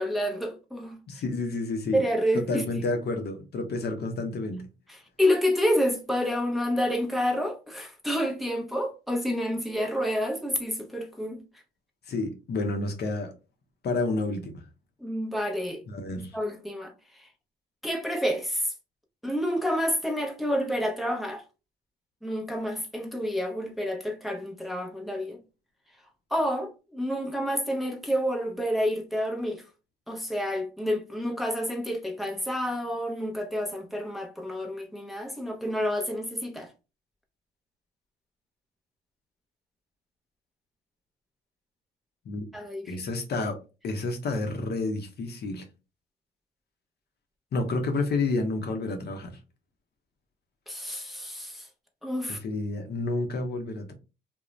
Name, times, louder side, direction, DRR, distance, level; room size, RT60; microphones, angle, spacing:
voice 1, 0.0-1.0 1.9-2.7 4.9-11.4 15.0-15.8 16.3-17.3 17.8-18.7 19.2-21.4 22.2-25.4 26.3-29.6 30.1-36.7 42.5-42.9 50.7-51.7 52.0-52.4, equal, ahead, 0.7 m, -29 dB
voice 2, 1.1-2.0 2.3-4.6 12.1-13.3 13.8-14.6 15.9-16.4 42.3-42.5 42.9-43.6 43.8-45.7 47.5-49.3 52.3-53.9, left 3 dB, 55° left, 0.7 m, -30 dB
2.4 x 2.1 x 3.0 m
cardioid pair, 90°, 20 cm